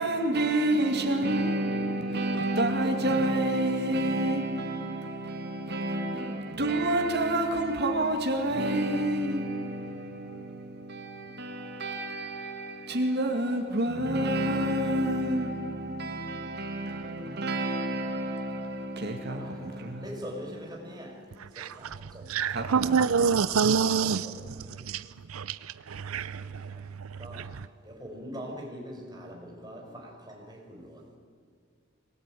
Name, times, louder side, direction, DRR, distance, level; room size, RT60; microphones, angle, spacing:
voice 1, 0.0-20.5 20.8-21.1 22.5-22.9, right 1 dB, 55° right, 2.3 m, -29 dB
voice 2, 19.3-21.2 21.6-22.3 23.8-24.8 26.4-26.8 27.2-27.5 27.8-31.2, equal, 20° right, 5.3 m, -43 dB
voice 3, 21.4-27.7, right 6 dB, 90° right, 0.6 m, -28 dB
25.5 x 19.0 x 9.3 m
head